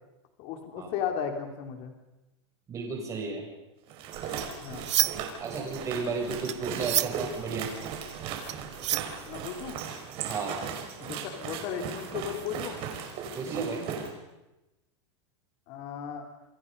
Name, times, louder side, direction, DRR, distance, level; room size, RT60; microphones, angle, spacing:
voice 1, 0.4-1.9 4.6-5.0 9.3-9.8 11.0-12.8 15.7-16.3, left 8 dB, 40° left, 4 dB, 3.6 m, -35 dB
voice 2, 2.7-3.4 5.4-7.7 10.3-10.6 13.3-13.9, right 4 dB, 20° right, 0 dB, 7.9 m, -33 dB
sound 1, 3.9-14.1, right 7 dB, 40° right, 5.5 m, -37 dB
sound 2, 4.1-5.4 5.7-9.7, right 14 dB, 80° right, 1.1 m, -31 dB
28.5 x 27.0 x 5.5 m, 1.0 s
supercardioid pair, 155°, 15 cm